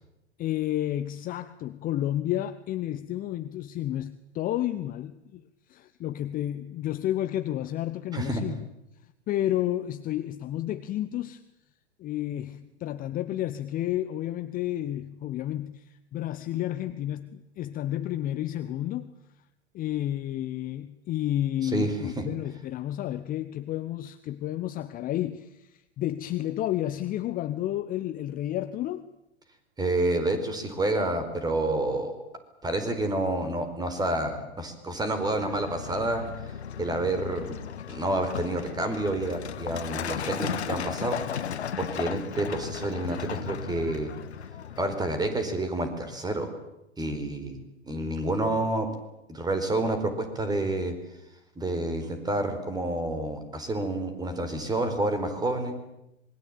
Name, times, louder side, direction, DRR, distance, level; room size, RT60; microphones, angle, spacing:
voice 1, 0.4-5.4 5.7-8.6 9.3-11.4 12.0-19.1 19.7-29.1, left 13 dB, 25° left, 12 dB, 1.0 m, -31 dB
voice 2, 21.6-22.2 29.8-32.1 32.6-36.2 36.8-37.6 37.9-41.2 41.8-44.1 44.8-46.5 47.0-47.6 47.8-48.9 49.3-50.9 51.6-55.7, right 2 dB, 10° right, 8 dB, 4.6 m, -29 dB
Truck, 35.2-45.5, left 8 dB, 70° left, 1.5 m, -36 dB
26.5 x 22.0 x 8.9 m, 0.88 s
figure-of-eight pair, 105°, 34 cm